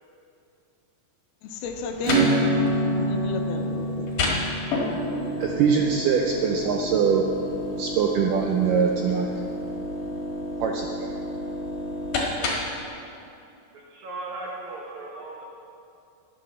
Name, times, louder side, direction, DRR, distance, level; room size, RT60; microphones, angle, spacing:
voice 1, 1.4-2.4 2.9-4.5, left 4 dB, 80° left, 4 dB, 2.6 m, -33 dB
sound 1, 1.7-12.8, left 1 dB, 60° left, 3.0 m, -31 dB
Acoustic guitar / Strum, 2.0-8.3, right 1 dB, 50° right, 1.3 m, -27 dB
voice 2, 4.6-5.0 12.1-12.6 13.7-15.4, right 2 dB, 65° right, -2 dB, 2.0 m, -38 dB
voice 3, 5.4-7.2 7.8-9.3 10.6-11.1, right 6 dB, 90° right, 1 dB, 1.9 m, -23 dB
11.0 x 9.2 x 6.8 m, 2.7 s
omnidirectional pair, 4.6 m